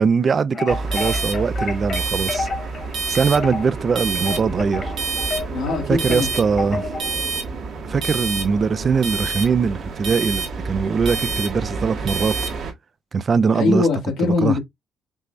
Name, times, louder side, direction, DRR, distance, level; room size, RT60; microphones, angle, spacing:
voice 1, 0.0-2.5 3.1-4.9 5.9-6.9 7.8-12.3 13.1-13.9 14.2-14.6, right 5 dB, 45° right, 0.4 m, -21 dB
sound 1, 0.5-7.2, left 4 dB, 50° left, 1.6 m, -31 dB
sound 2, 0.7-12.7, right 4 dB, 70° right, 1.5 m, -27 dB
voice 2, 5.5-6.3 13.5-14.6, left 3 dB, 85° left, 1.8 m, -21 dB
5.4 x 3.1 x 2.5 m
cardioid pair, 90°, 0 cm